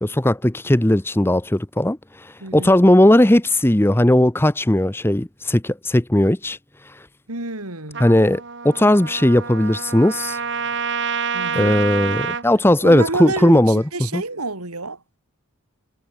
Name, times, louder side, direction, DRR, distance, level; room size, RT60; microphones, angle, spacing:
voice 1, 0.0-2.0 2.5-6.6 8.0-10.4 11.6-13.8 14.1-14.2, left 1 dB, 10° left, 0.7 m, -17 dB
voice 2, 2.4-2.7 7.3-8.1 11.3-11.8 12.8-15.2, right 2 dB, 90° right, 4.6 m, -29 dB
Trumpet, 7.9-12.5, right 6 dB, 55° right, 2.3 m, -27 dB
head